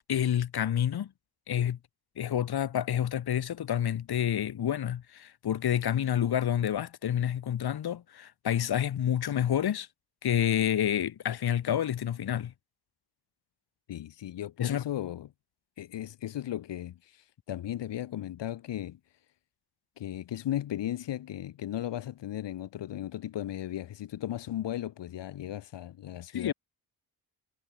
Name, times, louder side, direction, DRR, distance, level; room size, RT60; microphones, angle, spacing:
voice 1, 0.1-1.1 1.5-1.8 2.2-9.9 10.2-12.5 14.6-14.8 26.3-26.5, left 10 dB, 60° left, 1.8 m, -28 dB
voice 2, 13.9-15.3 15.8-19.0 20.0-26.5, left 12 dB, 80° left, 1.8 m, -36 dB
cardioid pair, 105°, 42 cm